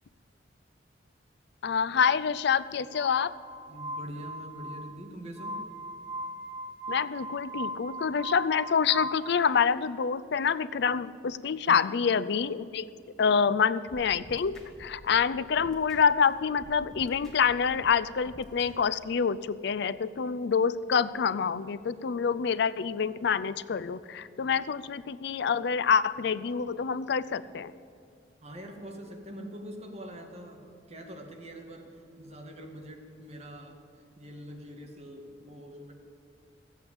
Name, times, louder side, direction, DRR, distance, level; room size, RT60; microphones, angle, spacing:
voice 1, 1.6-3.3 6.9-12.9 13.2-27.7, left 6 dB, 65° left, 16 dB, 0.4 m, -27 dB
Glass, 2.9-9.6, right 1 dB, 15° right, 0.9 m, -39 dB
voice 2, 3.7-5.6 11.6-11.9 28.4-33.8 34.2-35.9, equal, 35° right, 2 dB, 1.9 m, -44 dB
sound 1, 13.9-16.2 16.6-18.9, equal, 5° left, 2.4 m, -50 dB
14.0 x 8.2 x 8.6 m, 2.4 s
head